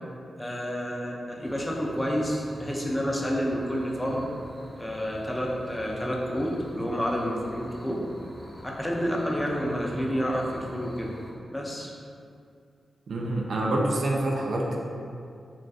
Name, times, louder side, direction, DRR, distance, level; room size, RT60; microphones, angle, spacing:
voice 1, 0.4-4.3 4.8-8.0 8.8-11.1 11.5-11.9, equal, 15° left, -2 dB, 0.4 m, -29 dB
sound 1, 1.4-11.3, left 1 dB, 35° left, 0.9 m, -46 dB
voice 2, 13.1-14.8, right 1 dB, 70° right, -1 dB, 0.3 m, -26 dB
2.5 x 2.3 x 2.3 m, 2.4 s
supercardioid pair, 40°, 0 cm